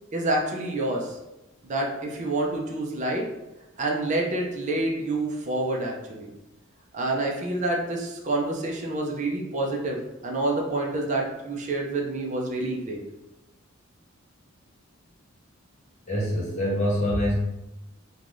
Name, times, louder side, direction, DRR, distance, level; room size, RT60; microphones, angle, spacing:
voice 1, 0.1-1.2 1.6-3.3 3.8-6.3 6.9-13.0, right 2 dB, 35° right, -1 dB, 0.4 m, -28 dB
voice 2, 16.1-17.3, equal, 35° left, -6 dB, 1.0 m, -25 dB
3.3 x 2.2 x 2.5 m, 0.95 s
head